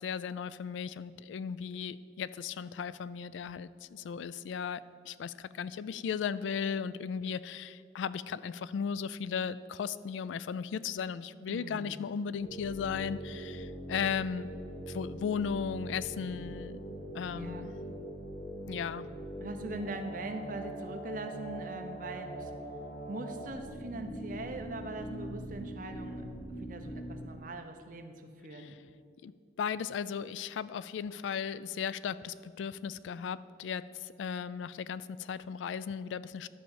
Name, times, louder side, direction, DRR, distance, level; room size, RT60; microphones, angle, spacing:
voice 1, 0.0-14.5 14.9-16.8 17.1-17.7 18.7-19.0 28.5-28.7 29.2-29.3 29.6-36.5, left 7 dB, 90° left, 17 dB, 0.3 m, -36 dB
voice 2, 11.5-12.0 17.3-17.7 19.4-22.5 23.1-26.3 26.6-28.8, right 2 dB, 45° right, 6 dB, 0.8 m, -41 dB
sound 1, 12.4-27.2, right 1 dB, 55° left, 1.7 m, -42 dB
11.0 x 4.3 x 7.2 m, 2.3 s
head